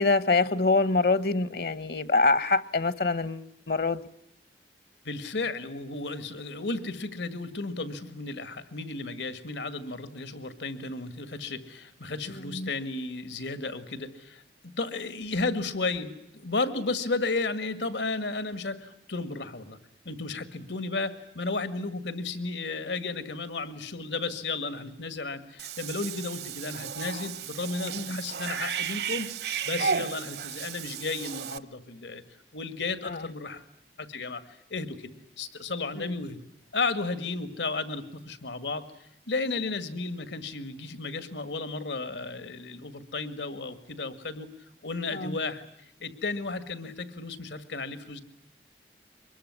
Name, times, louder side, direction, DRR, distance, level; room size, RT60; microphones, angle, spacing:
voice 1, 0.0-4.0 12.5-12.7 27.9-28.2 33.0-33.2 36.0-36.1 45.1-45.4, left 3 dB, 60° left, 0.9 m, -25 dB
voice 2, 5.1-19.8 20.1-29.3 29.6-32.2 32.5-33.6 34.0-34.4 34.7-36.4 36.7-38.9 39.3-44.5 44.8-45.6 46.0-48.2, left 3 dB, 90° left, 1.9 m, -33 dB
Cat / Bathtub (filling or washing), 25.6-31.6, right 6 dB, 70° right, 0.9 m, -34 dB
24.0 x 21.5 x 9.6 m
head